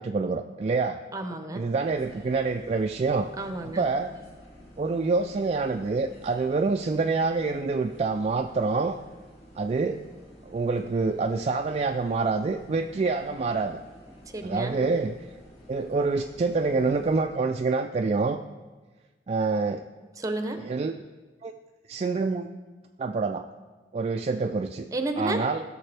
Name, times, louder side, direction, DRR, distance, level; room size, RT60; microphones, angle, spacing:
voice 1, 0.0-1.0 1.5-3.3 3.8-4.1 4.8-9.0 9.6-10.0 10.5-13.8 14.4-15.2 15.7-18.4 19.3-19.9 20.6-20.9 21.4-21.5 21.9-22.5 23.0-23.4 23.9-24.9 25.2-25.6, right 4 dB, 35° right, 5 dB, 0.3 m, -26 dB
voice 2, 1.1-1.6 3.4-3.9 14.3-14.7 20.2-20.6 24.9-25.4, right 2 dB, 20° right, 6 dB, 0.8 m, -31 dB
sound 1, 1.8-17.3, equal, 35° left, 2.5 m, -51 dB
16.0 x 6.6 x 3.4 m, 1.3 s
head